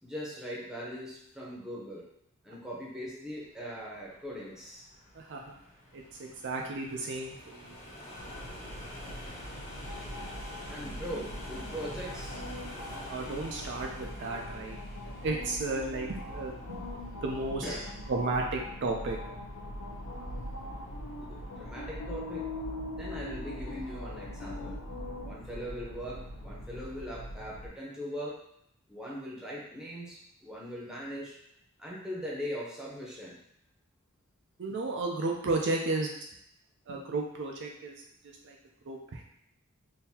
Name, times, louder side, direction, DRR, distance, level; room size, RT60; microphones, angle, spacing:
voice 1, 0.0-2.1 2.4-4.8 10.7-12.4 17.6-17.9 21.2-22.5 22.9-24.8 25.2-28.4 28.9-31.4 31.8-33.3, equal, 5° right, -6 dB, 0.8 m, -40 dB
sound 1, 3.7-21.9, left 1 dB, 35° left, 1.3 m, -49 dB
voice 2, 5.9-7.8 13.1-14.8 15.0-16.9 17.2-17.6 18.1-19.2 34.6-36.1 36.9-37.9 38.4-38.6 38.8-39.2, right 3 dB, 55° right, 0 dB, 0.4 m, -33 dB
sound 2, 8.2-27.7, left 1 dB, 75° left, 0.6 m, -41 dB
3.7 x 2.7 x 2.8 m, 0.76 s
head